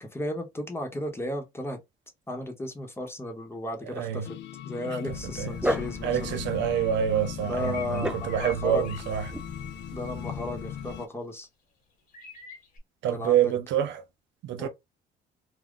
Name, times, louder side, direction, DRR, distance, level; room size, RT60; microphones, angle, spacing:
voice 1, 0.0-1.8 2.3-4.4 4.6-6.4 7.4-8.8 9.9-11.5 13.1-13.5 14.6-14.7, left 1 dB, 15° left, 0.9 m, -34 dB
voice 2, 3.8-4.3 4.8-5.5 6.0-9.3 13.0-14.0 14.4-14.7, right 9 dB, 75° right, 0.5 m, -27 dB
sound 1, 4.2-11.1, left 12 dB, 70° left, 0.4 m, -39 dB
Dog, 5.1-11.0, equal, 5° right, 0.3 m, -36 dB
sound 2, 7.6-8.6 8.8-9.1 12.1-12.8, left 5 dB, 50° left, 1.2 m, -44 dB
2.4 x 2.2 x 3.6 m
cardioid pair, 110°, 19 cm